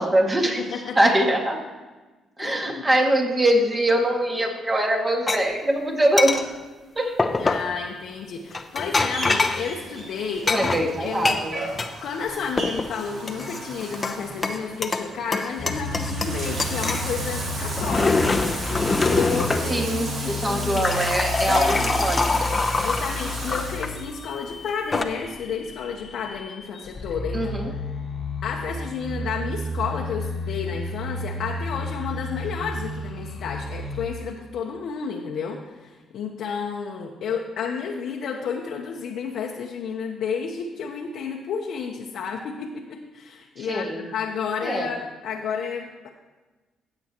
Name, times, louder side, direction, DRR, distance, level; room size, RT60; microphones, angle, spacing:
voice 1, 0.0-0.6 1.0-1.6 2.4-6.6 7.0-7.2 10.5-11.6 19.7-22.5 27.3-27.7 43.6-44.0 44.6-44.9, right 1 dB, 25° right, 1 dB, 2.0 m, -23 dB
voice 2, 0.6-1.1 2.4-2.8 7.3-10.7 11.0-11.5 12.0-20.9 21.5-21.8 22.8-27.6 28.4-46.1, left 6 dB, 75° left, -1 dB, 0.9 m, -31 dB
sound 1, 5.3-5.4 6.2-6.4 7.2-7.7 8.5-9.7 10.5-11.9 12.3-12.9 13.3-14.2 14.4-15.1 15.3-16.3 16.6-17.1 17.6-19.7 20.4-23.9 24.7-25.0, left 3 dB, 25° left, 0.7 m, -24 dB
Bathtub (filling or washing), 9.1-23.9, right 2 dB, 60° right, 3.1 m, -35 dB
sound 2, 15.6-34.1, left 1 dB, 50° left, 1.2 m, -32 dB
15.5 x 7.8 x 3.0 m, 1.2 s
cardioid pair, 90°, 0 cm